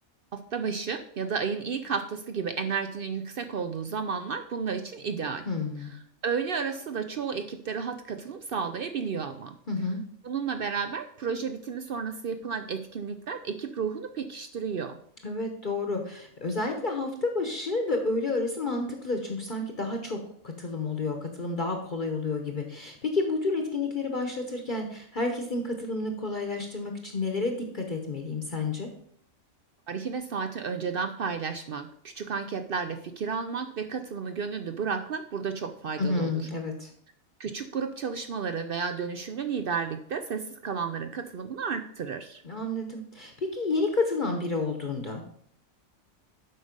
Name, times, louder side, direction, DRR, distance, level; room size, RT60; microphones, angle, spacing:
voice 1, 0.3-5.4 6.2-9.6 10.2-15.0 29.9-36.3 37.4-42.4, right 6 dB, 60° right, 8 dB, 0.6 m, -32 dB
voice 2, 5.5-5.9 9.7-10.0 15.2-20.2 20.4-28.9 36.0-36.9 42.4-45.2, left 3 dB, 40° left, 3 dB, 1.0 m, -30 dB
7.9 x 5.2 x 5.1 m, 0.65 s
omnidirectional pair, 1.4 m